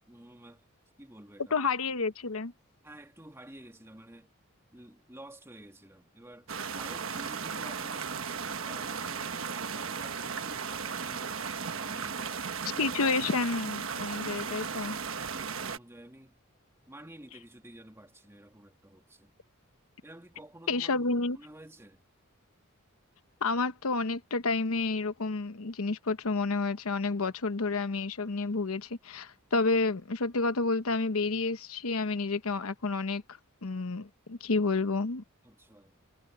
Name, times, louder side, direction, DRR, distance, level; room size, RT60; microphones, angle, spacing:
voice 1, 0.1-0.7 1.0-1.6 2.8-4.3 4.7-11.4 11.7-13.0 14.5-16.4 16.9-19.3 20.0-21.1 21.3-22.0 35.4-36.1, right 1 dB, 10° right, 2.3 m, -51 dB
voice 2, 1.5-2.5 12.8-15.0 20.7-21.4 23.4-33.2 33.6-35.2, left 3 dB, 80° left, 1.0 m, -30 dB
sound 1, 6.5-15.8, right 6 dB, 65° right, 1.3 m, -36 dB
head